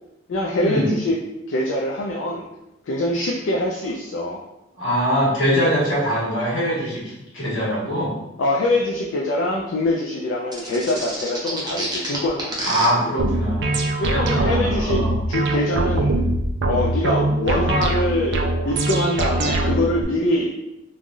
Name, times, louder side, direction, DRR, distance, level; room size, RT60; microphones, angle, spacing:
voice 1, 0.3-1.2 1.5-2.4 2.9-4.4 8.4-12.7 13.0-13.1 14.0-15.0 15.3-16.1 16.7-20.5, left 1 dB, 70° left, -1 dB, 0.4 m, -24 dB
voice 2, 4.8-7.0 7.3-8.1 12.7-13.8 14.1-15.2, equal, 85° left, -7 dB, 1.4 m, -22 dB
sound 1, 10.5-12.9, right 1 dB, 20° right, 0.6 m, -28 dB
sound 2, 13.2-20.0, right 2 dB, 60° right, 0.4 m, -22 dB
3.2 x 2.3 x 2.5 m, 0.91 s
head